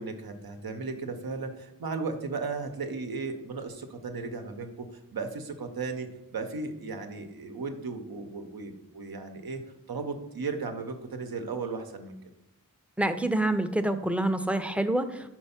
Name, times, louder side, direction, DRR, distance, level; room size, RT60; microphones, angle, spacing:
voice 1, 0.0-4.9 5.1-9.6 9.9-12.2, right 4 dB, 85° right, 5 dB, 0.7 m, -35 dB
voice 2, 13.0-15.3, right 1 dB, 5° right, 8 dB, 0.5 m, -27 dB
4.5 x 4.4 x 5.6 m, 0.88 s
wide cardioid pair, 40°, 35 cm